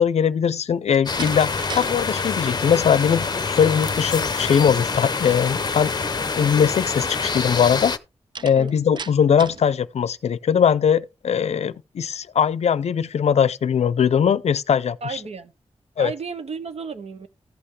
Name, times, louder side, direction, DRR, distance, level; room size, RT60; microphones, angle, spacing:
voice 1, 0.0-1.5 1.7-5.9 6.4-7.9 8.4-15.0 16.0-16.1, left 7 dB, 80° left, 0.5 m, -20 dB
Slam, 0.8-1.9 2.3-2.7 8.3-9.7, right 5 dB, 45° right, 0.4 m, -36 dB
sound 1, 1.1-8.0, left 4 dB, 40° left, 0.6 m, -26 dB
voice 2, 15.0-15.5 16.0-17.3, right 5 dB, 70° right, 0.9 m, -33 dB
15.0 x 5.6 x 3.2 m
wide cardioid pair, 110°, 11 cm